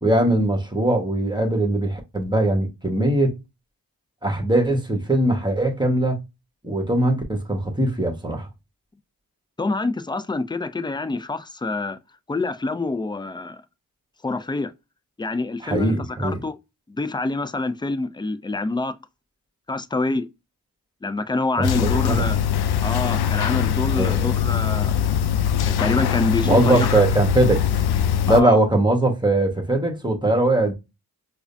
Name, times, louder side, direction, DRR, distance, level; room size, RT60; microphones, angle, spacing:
voice 1, 0.0-3.3 4.2-6.2 6.6-8.5 15.6-16.4 21.6-22.3 24.0-24.5 26.4-27.6 28.3-30.7, right 1 dB, 10° right, 1.3 m, -21 dB
voice 2, 9.6-12.0 12.3-13.6 14.2-14.7 15.2-16.6 16.9-18.9 19.7-20.3 21.0-22.4 22.8-25.0 25.7-27.0 28.3-28.6, left 3 dB, 10° left, 0.4 m, -26 dB
sound 1, 21.6-28.4, left 9 dB, 70° left, 0.5 m, -22 dB
4.8 x 2.2 x 2.6 m
cardioid pair, 50°, 40 cm